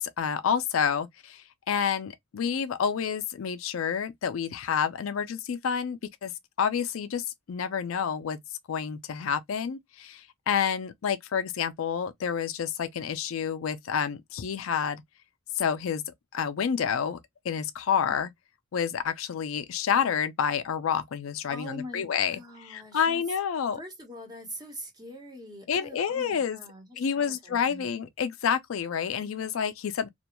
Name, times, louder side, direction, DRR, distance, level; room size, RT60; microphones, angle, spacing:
voice 1, 0.0-6.3 6.6-8.4 8.7-15.0 15.6-16.0 16.3-17.2 17.4-18.3 18.7-22.4 22.7-23.8 25.7-26.6 27.0-30.1, left 7 dB, 80° left, 0.4 m, -29 dB
voice 2, 21.5-23.2 23.8-27.9, equal, 20° right, 0.9 m, -43 dB
2.4 x 2.2 x 2.8 m
head